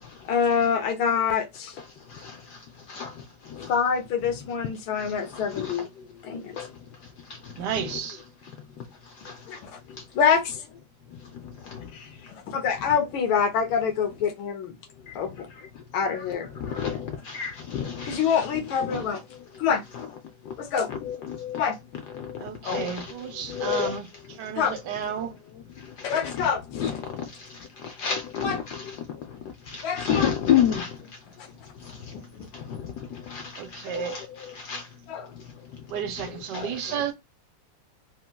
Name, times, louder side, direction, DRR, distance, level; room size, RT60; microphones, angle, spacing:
voice 1, 0.3-1.8 3.5-5.9 6.2-6.6 9.5-9.8 10.1-10.6 11.9-14.8 15.1-15.5 15.9-16.5 18.0-19.2 19.6-19.8 20.6-20.9 21.5-21.8 24.6-24.8 26.0-26.6 28.4-28.6 29.8-30.3 31.4-31.5 32.1-32.5 33.9-34.2 35.1-35.3 36.6-36.7, left 7 dB, 90° left, 1.5 m, -26 dB
voice 2, 1.8-2.6 2.9-3.7 5.0-6.1 6.6-6.7 7.3-8.0 9.2-9.6 10.0-10.1 11.3-11.9 15.1-15.2 16.0-19.4 19.9-20.1 20.4-20.5 20.9-21.6 21.9-24.0 25.2-25.3 25.8-27.3 27.8-28.8 29.7-31.0 31.8-32.1 32.5-34.9 36.2-37.0, left 8 dB, 70° left, 1.0 m, -31 dB
voice 3, 7.6-8.2 22.4-25.3 33.6-34.2 35.9-37.1, right 8 dB, 70° right, 1.2 m, -32 dB
3.7 x 2.2 x 2.2 m
omnidirectional pair, 2.1 m